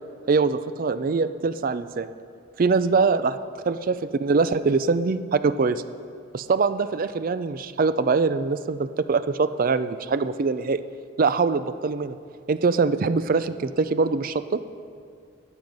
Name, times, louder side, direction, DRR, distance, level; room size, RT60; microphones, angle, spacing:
voice 1, 0.3-2.1 2.6-3.4 3.7-5.8 6.3-10.8 11.2-12.2 12.5-14.6, right 4 dB, 40° right, 13 dB, 0.4 m, -23 dB
12.5 x 9.0 x 5.3 m, 2.2 s
head